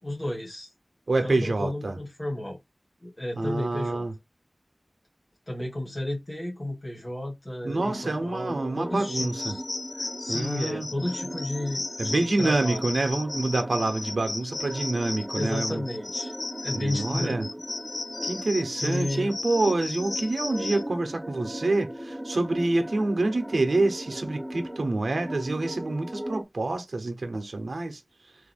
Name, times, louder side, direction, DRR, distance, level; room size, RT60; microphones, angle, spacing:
voice 1, 0.0-0.7 1.2-2.6 3.0-4.1 5.5-9.6 10.0-12.8 15.3-16.3 16.6-17.4 18.8-19.3, left 1 dB, 45° left, 2.0 m, -32 dB
voice 2, 1.1-2.0 3.4-4.1 7.6-9.6 10.3-10.9 12.0-15.8 16.7-17.5 18.2-28.0, right 2 dB, 85° right, 0.9 m, -27 dB
sound 1, 7.8-26.4, equal, 15° right, 0.8 m, -39 dB
sound 2, 9.1-20.8, left 2 dB, 70° left, 0.4 m, -35 dB
3.7 x 2.8 x 4.2 m
wide cardioid pair, 45°, 0 cm